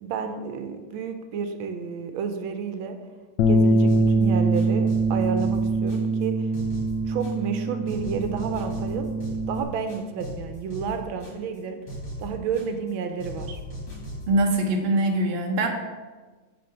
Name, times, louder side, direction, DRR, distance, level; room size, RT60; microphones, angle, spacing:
voice 1, 0.0-3.0 3.5-6.5 7.1-9.1 9.5-11.8 12.2-13.6, right 6 dB, 75° right, 7 dB, 1.4 m, -31 dB
Bass guitar, 3.4-9.6, right 2 dB, 75° left, 1.0 m, -23 dB
sound 1, 3.9-4.2 4.5-6.2 6.5-7.6 7.9-9.6 9.9-11.6 11.9-12.9 13.2-14.4, equal, 60° left, 3.2 m, -38 dB
voice 2, 14.3-15.7, right 1 dB, 55° right, 2 dB, 0.6 m, -22 dB
6.9 x 3.9 x 6.5 m, 1.3 s
omnidirectional pair, 2.4 m